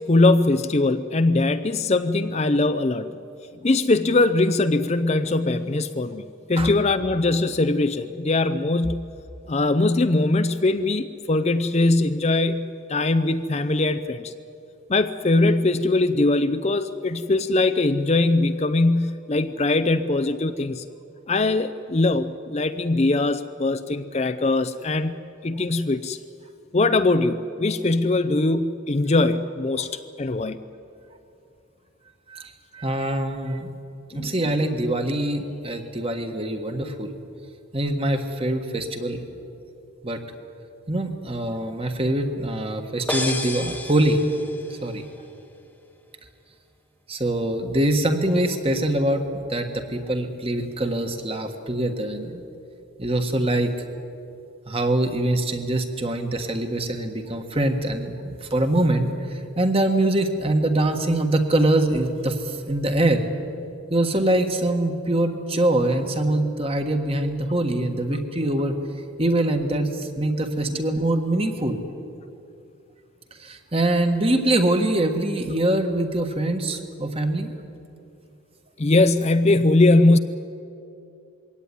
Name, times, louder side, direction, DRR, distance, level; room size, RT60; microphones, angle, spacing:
voice 1, 0.1-3.1 3.6-6.2 6.5-9.1 9.5-14.3 14.9-20.8 21.3-25.1 25.4-26.2 26.7-29.9 30.2-30.6 34.1-34.3 78.8-80.2, left 2 dB, 30° left, 10 dB, 0.5 m, -21 dB
voice 2, 32.3-33.7 34.1-37.1 37.7-39.2 40.0-40.2 40.9-44.2 44.7-45.0 47.1-52.4 53.0-53.7 54.7-59.1 59.6-63.2 63.9-68.8 69.2-71.8 73.4-77.5, right 1 dB, 25° right, 6 dB, 1.6 m, -23 dB
sound 1, 43.1-44.9, left 2 dB, 10° left, 1.0 m, -30 dB
22.0 x 17.0 x 9.8 m, 2.7 s
head